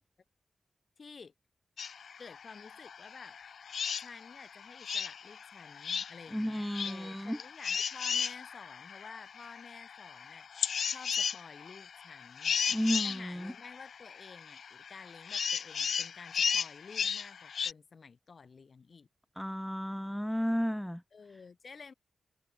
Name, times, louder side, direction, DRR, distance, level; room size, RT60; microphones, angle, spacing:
voice 1, 1.0-1.3 2.2-3.4 4.0-12.6 13.0-19.1 21.1-21.9, left 5 dB, 50° left, 4.7 m, -51 dB
sound 1, 1.8-17.7, left 7 dB, 70° left, 0.5 m, -36 dB
voice 2, 6.3-7.4 12.7-13.5 19.4-21.0, equal, ahead, 0.4 m, -33 dB
wide cardioid pair, 115°, 0 cm